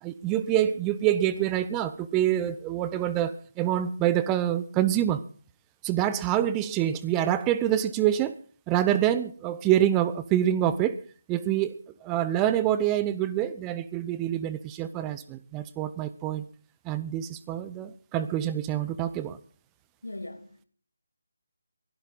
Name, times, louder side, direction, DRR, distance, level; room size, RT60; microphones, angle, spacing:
voice 1, 0.0-5.2 5.8-8.4 8.7-11.0 11.3-11.8 12.0-16.4 16.8-19.4, right 11 dB, 15° right, 0.7 m, -26 dB
voice 2, 20.0-20.7, left 2 dB, 80° left, 2.1 m, -39 dB
23.0 x 12.0 x 3.9 m
figure-of-eight pair, 155°, 0 cm